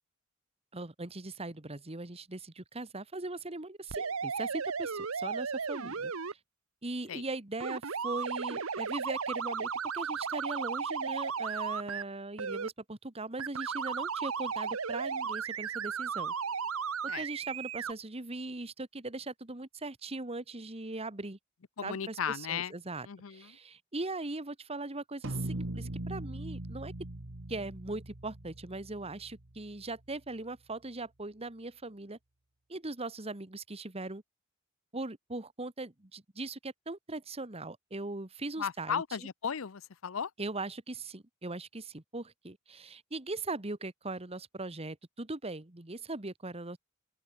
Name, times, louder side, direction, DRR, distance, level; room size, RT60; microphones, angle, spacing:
voice 1, 0.7-6.1 6.8-16.3 17.0-21.4 21.8-26.9 27.5-32.2 32.7-34.2 34.9-39.0 40.4-46.8, right 2 dB, 30° right, 1.6 m, -40 dB
sound 1, 3.9-6.3 7.6-12.0 12.4-12.7 13.4-17.9, right 6 dB, 90° right, 1.1 m, -35 dB
voice 2, 21.8-22.7 23.1-23.5 38.6-40.3, left 7 dB, 70° left, 0.6 m, -35 dB
sound 2, 25.2-29.8, right 1 dB, 65° right, 1.8 m, -40 dB
open air
head